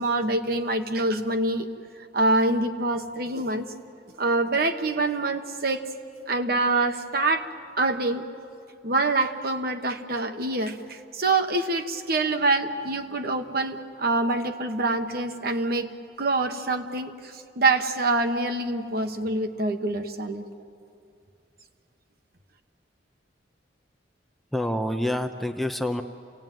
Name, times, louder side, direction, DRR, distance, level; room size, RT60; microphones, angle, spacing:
voice 1, 0.0-1.7 2.1-3.7 4.2-5.8 6.3-7.5 7.8-8.2 8.8-20.4, right 2 dB, 55° right, 6 dB, 1.3 m, -25 dB
voice 2, 24.5-26.0, left 1 dB, ahead, 5 dB, 0.7 m, -27 dB
29.0 x 18.0 x 9.2 m, 2.5 s
head